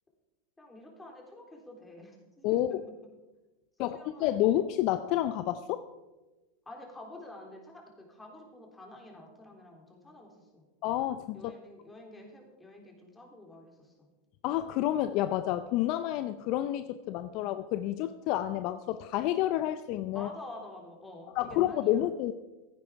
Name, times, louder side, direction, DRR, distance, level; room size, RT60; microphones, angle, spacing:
voice 1, 0.6-2.8 3.8-4.6 6.7-10.7 11.3-14.1 20.1-22.1, left 1 dB, 10° left, 0 dB, 3.5 m, -49 dB
voice 2, 2.4-2.8 3.8-5.8 10.8-11.5 14.4-20.3 21.4-22.3, left 13 dB, 50° left, 12 dB, 0.5 m, -29 dB
15.5 x 9.5 x 4.8 m, 1.1 s
hypercardioid pair, 105°, 0 cm